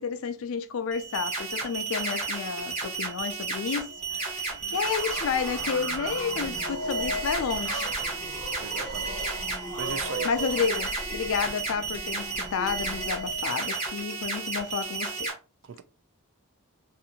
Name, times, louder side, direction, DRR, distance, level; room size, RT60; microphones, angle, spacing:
voice 1, 0.0-3.9 4.2-7.9 10.2-15.3, left 6 dB, 65° left, 0.4 m, -31 dB
sound 1, 0.9-15.3, right 4 dB, 30° right, 1.0 m, -33 dB
sound 2, 3.8-13.6, left 1 dB, 15° left, 0.5 m, -39 dB
sound 3, 4.5-10.8, right 3 dB, 75° right, 1.0 m, -40 dB
voice 2, 8.6-10.3 15.6-15.8, right 6 dB, 60° right, 0.4 m, -40 dB
2.7 x 2.5 x 2.7 m
head